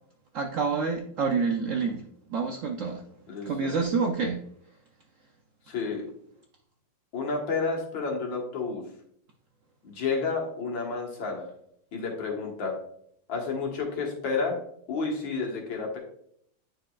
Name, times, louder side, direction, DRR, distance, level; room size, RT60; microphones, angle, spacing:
voice 1, 0.3-2.0 2.3-3.0 3.4-4.4, right 5 dB, 85° right, 3 dB, 0.6 m, -27 dB
voice 2, 5.7-6.1 7.1-8.8 9.8-11.5 11.9-12.8 13.3-14.6 14.9-16.0, left 4 dB, 90° left, 0 dB, 2.1 m, -30 dB
9.2 x 4.8 x 2.3 m, 0.69 s
omnidirectional pair, 2.0 m